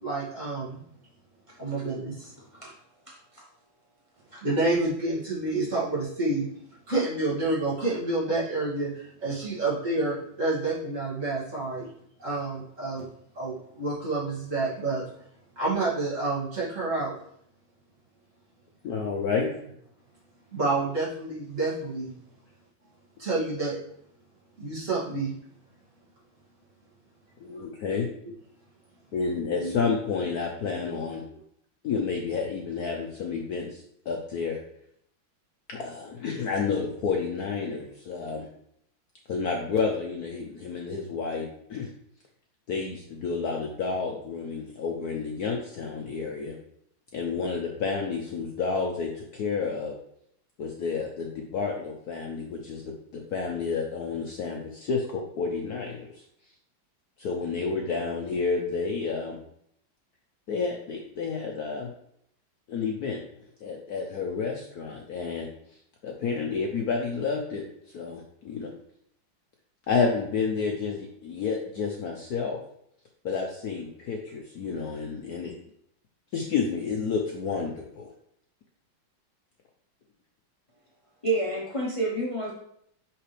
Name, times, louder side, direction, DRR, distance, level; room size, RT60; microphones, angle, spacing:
voice 1, 0.0-0.8 1.6-2.3 4.4-6.5 6.9-11.9 12.2-13.1 13.3-15.1 15.6-17.1 19.3-19.4 20.5-22.1 23.2-23.8 24.6-25.3 29.6-29.7, right 2 dB, 40° right, -8 dB, 2.6 m, -28 dB
voice 2, 3.1-3.4 4.3-4.4 81.2-82.5, right 2 dB, 35° left, -4 dB, 0.5 m, -29 dB
voice 3, 18.8-19.5 27.4-28.1 29.1-31.2 31.8-34.6 35.7-38.5 39.3-41.9 42.7-46.5 47.1-49.9 50.6-56.2 57.2-59.4 60.5-61.9 62.7-63.2 63.6-65.5 66.0-68.7 69.9-72.6 73.2-75.5 76.3-78.1, left 5 dB, 65° left, 1 dB, 1.0 m, -30 dB
6.0 x 5.9 x 3.2 m, 0.70 s
omnidirectional pair, 2.2 m